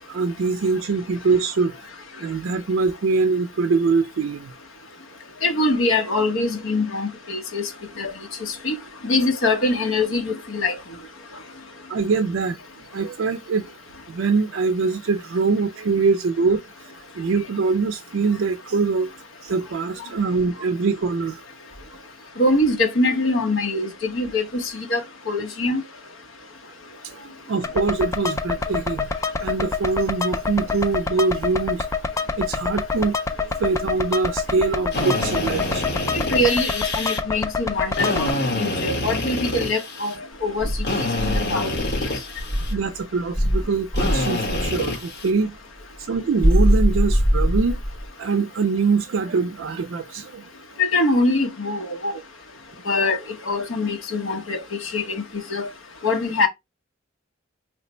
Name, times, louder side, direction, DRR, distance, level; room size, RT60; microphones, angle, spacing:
voice 1, 0.1-1.8 2.2-4.5 11.9-12.6 12.9-13.7 14.1-19.1 19.4-21.4 27.0-29.1 29.4-31.9 32.3-35.9 42.7-45.6 46.0-47.8 48.2-50.4, right 4 dB, 70° right, 0.4 m, -23 dB
voice 2, 5.4-7.7 8.0-8.1 8.4-8.7 9.0-10.7 22.4-25.0 25.3-25.8 36.3-40.1 40.4-40.7 41.0-41.8 50.8-52.1 52.9-53.2 53.5-54.6 54.9-55.0 55.5-55.7 56.0-56.5, left 2 dB, 80° left, 1.0 m, -23 dB
sound 1, 27.6-38.3, left 4 dB, 15° left, 0.3 m, -27 dB
Drill, 34.9-37.2 37.9-40.2 40.8-42.7 43.9-45.3, left 2 dB, 55° left, 1.5 m, -27 dB
Insect, 40.6-42.9 43.3-44.8 46.4-48.1, equal, 40° left, 0.8 m, -21 dB
3.2 x 2.0 x 4.2 m
head